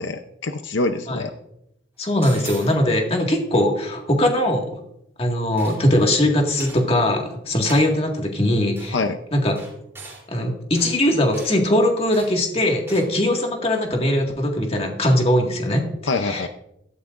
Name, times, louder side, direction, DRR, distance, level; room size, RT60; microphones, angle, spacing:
voice 1, 0.0-1.3 8.9-9.2 16.1-16.5, left 3 dB, 75° left, 8 dB, 0.7 m, -25 dB
voice 2, 2.0-4.7 5.2-9.0 9.3-9.5 10.3-15.8 16.1-16.5, left 1 dB, 30° left, 1 dB, 1.9 m, -20 dB
sound 1, 2.2-2.8 5.6-6.0 6.6-6.9 7.7-7.9 8.8-8.9 9.6-10.2 10.8-11.0 11.3-11.6 12.1-12.4 12.9-13.1, right 3 dB, 15° right, 3.2 m, -39 dB
17.0 x 13.0 x 2.5 m, 0.79 s
head